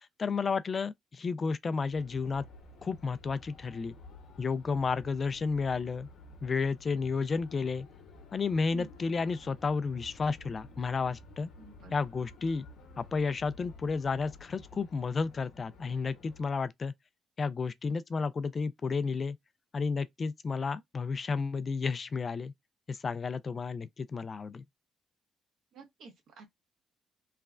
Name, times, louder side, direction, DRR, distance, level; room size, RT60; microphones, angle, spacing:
voice 1, 0.2-2.5 2.8-3.9 4.4-6.1 6.4-7.9 8.3-11.5 11.9-12.7 13.0-16.9 17.4-19.4 19.7-22.5 22.9-24.6, left 4 dB, 40° left, 0.4 m, -32 dB
sound 1, 1.9-16.5, left 3 dB, 80° left, 0.8 m, -53 dB
voice 2, 11.6-12.0 25.7-26.5, right 4 dB, 75° right, 1.3 m, -49 dB
3.2 x 2.1 x 2.4 m
cardioid pair, 90°, 0 cm